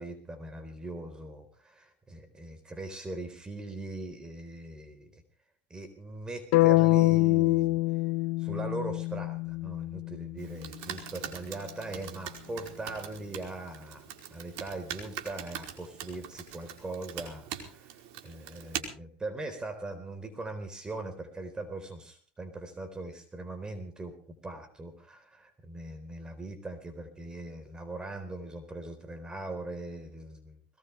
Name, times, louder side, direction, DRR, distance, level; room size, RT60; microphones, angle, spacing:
voice 1, 0.0-5.2 5.7-7.8 8.4-24.2 24.4-30.8, right 2 dB, 15° right, 9 dB, 4.0 m, -40 dB
sound 1, 6.5-10.6, left 20 dB, 65° left, 0.9 m, -25 dB
Computer keyboard, 10.4-18.8, right 10 dB, 65° right, 4.7 m, -42 dB
21.5 x 20.0 x 3.3 m, 0.41 s
supercardioid pair, 105°, 5 cm